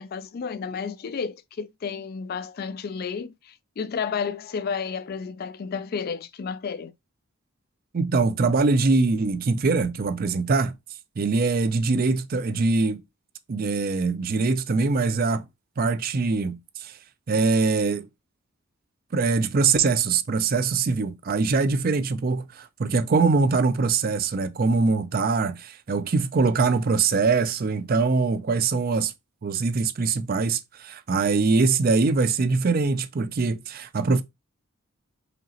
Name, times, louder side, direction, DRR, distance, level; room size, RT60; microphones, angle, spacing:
voice 1, 0.0-6.9, left 6 dB, 45° left, 0.3 m, -32 dB
voice 2, 7.9-10.7 11.2-13.0 13.5-15.5 15.8-16.9 17.3-18.1 19.1-29.1 29.4-34.2, right 4 dB, 45° right, 0.4 m, -23 dB
5.0 x 2.9 x 2.8 m
head